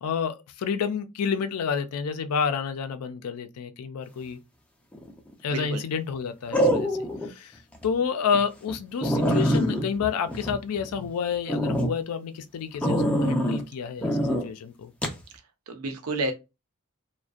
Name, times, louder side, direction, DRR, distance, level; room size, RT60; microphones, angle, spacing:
voice 1, 0.0-4.4 5.4-14.9, left 6 dB, 80° left, 0.4 m, -29 dB
sound 1, 4.9-5.3 6.5-7.3 7.7-7.9 8.3-8.4 8.7-8.8 9.0-11.1 11.5-11.9 12.8-13.6 14.0-14.4 15.0-15.2, equal, 5° left, 0.4 m, -24 dB
voice 2, 5.5-5.8 15.7-16.3, right 2 dB, 75° right, 0.6 m, -30 dB
2.5 x 2.1 x 2.3 m
head